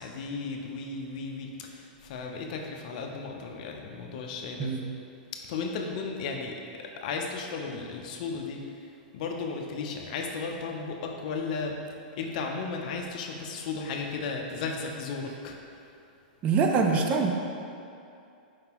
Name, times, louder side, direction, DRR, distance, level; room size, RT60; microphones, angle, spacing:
voice 1, 0.0-4.7 5.3-6.5 7.0-8.6 9.1-11.8 12.2-15.6, left 4 dB, 55° left, 2 dB, 0.5 m, -35 dB
voice 2, 16.4-17.3, right 5 dB, 25° right, 2 dB, 0.4 m, -24 dB
4.8 x 3.6 x 2.9 m, 2.5 s
hypercardioid pair, 140°, 5 cm